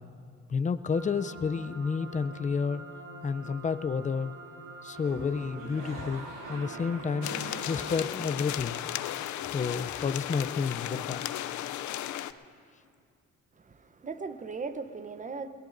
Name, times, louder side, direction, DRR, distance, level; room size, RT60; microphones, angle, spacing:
voice 1, 0.5-2.8 3.2-4.3 4.8-7.3 7.7-8.8 9.5-11.2, left 5 dB, 25° left, 12 dB, 0.5 m, -30 dB
sound 1, 0.9-8.0, right 3 dB, 40° right, 1.3 m, -47 dB
sound 2, 3.9-4.4 4.6-8.6, right 2 dB, 85° right, 3.3 m, -43 dB
sound 3, 7.2-12.3, left 12 dB, 75° left, 0.5 m, -35 dB
voice 2, 13.6-15.5, right 4 dB, 25° right, 11 dB, 0.8 m, -38 dB
22.0 x 19.0 x 2.6 m, 2.3 s
cardioid pair, 90°, 30 cm